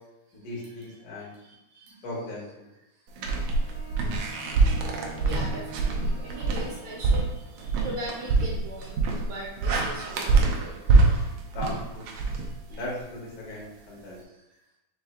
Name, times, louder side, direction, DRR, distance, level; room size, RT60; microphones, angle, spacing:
voice 1, 0.3-1.3 2.0-2.7 11.5-12.1 12.7-14.2, left 1 dB, 90° left, -5 dB, 3.1 m, -37 dB
voice 2, 1.2-2.0 5.2-10.8 12.7-12.8, equal, 70° right, -3 dB, 1.9 m, -40 dB
sound 1, 3.2-13.0, right 3 dB, 85° right, 1.4 m, -25 dB
sound 2, 3.5-7.5, right 2 dB, 60° left, 0.9 m, -44 dB
6.2 x 2.2 x 3.5 m, 0.91 s
omnidirectional pair, 3.8 m